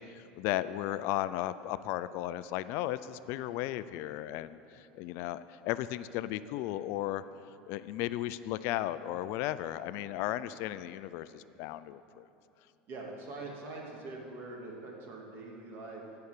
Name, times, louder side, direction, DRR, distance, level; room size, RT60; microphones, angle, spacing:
voice 1, 0.1-7.2 7.7-12.3, left 14 dB, 60° left, 14 dB, 0.4 m, -35 dB
voice 2, 12.9-16.0, right 2 dB, 50° right, -1 dB, 2.6 m, -43 dB
15.5 x 5.8 x 6.7 m, 2.7 s
hypercardioid pair, 95°, 5 cm